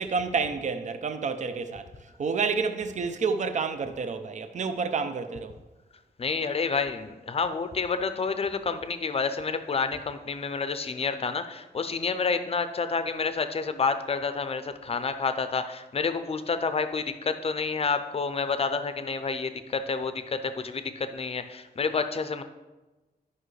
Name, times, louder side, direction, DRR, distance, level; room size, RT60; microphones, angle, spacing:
voice 1, 0.0-1.9 2.2-5.5, right 5 dB, 50° right, 0.5 m, -29 dB
voice 2, 6.2-22.4, left 4 dB, 40° left, 0.5 m, -29 dB
11.5 x 5.5 x 3.2 m
wide cardioid pair, 160°, 16 cm